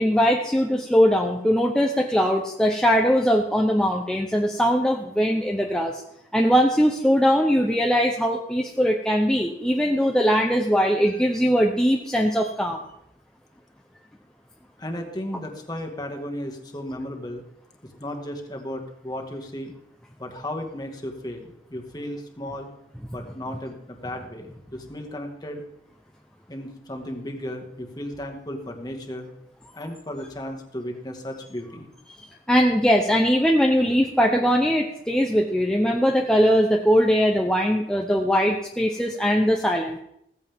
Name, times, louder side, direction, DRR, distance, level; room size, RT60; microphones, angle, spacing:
voice 1, 0.0-6.0 6.3-12.8 32.1-32.2 32.5-40.0, equal, 5° left, 0 dB, 0.8 m, -21 dB
voice 2, 14.8-17.4 17.8-19.7 20.2-22.7 23.1-25.6 26.5-29.3 29.7-31.9, left 1 dB, 20° left, 2 dB, 1.9 m, -35 dB
16.0 x 15.0 x 3.7 m, 0.77 s
head